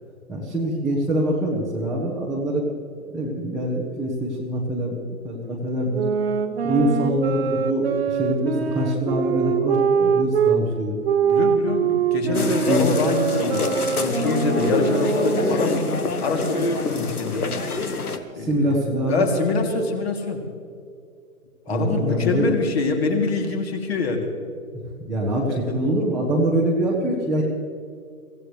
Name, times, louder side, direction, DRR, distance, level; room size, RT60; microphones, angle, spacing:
voice 1, 0.3-2.7 3.1-6.0 6.6-11.0 12.3-12.8 18.3-19.3 21.7-22.5 25.0-27.4, right 1 dB, ahead, -8 dB, 1.0 m, -24 dB
sound 1, 5.9-10.6 11.0-16.0, right 7 dB, 45° right, 1.1 m, -23 dB
voice 2, 11.2-13.6 14.0-17.5 18.3-18.8 19.1-20.4 21.7-24.3 25.5-25.8, left 3 dB, 45° left, 3 dB, 2.9 m, -25 dB
sound 2, 12.3-18.2, left 3 dB, 90° left, 1.7 m, -25 dB
24.0 x 16.5 x 3.3 m, 2.3 s
hypercardioid pair, 150°, 43 cm